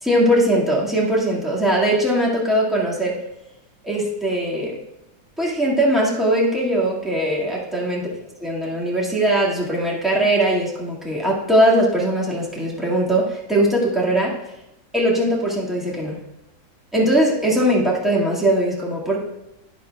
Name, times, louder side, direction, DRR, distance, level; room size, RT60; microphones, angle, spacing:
voice 1, 0.0-3.1 3.8-4.8 5.4-8.0 8.4-14.3 14.9-16.2 16.9-19.2, right 1 dB, ahead, -5 dB, 1.5 m, -20 dB
12.0 x 9.4 x 2.3 m, 0.89 s
omnidirectional pair, 2.2 m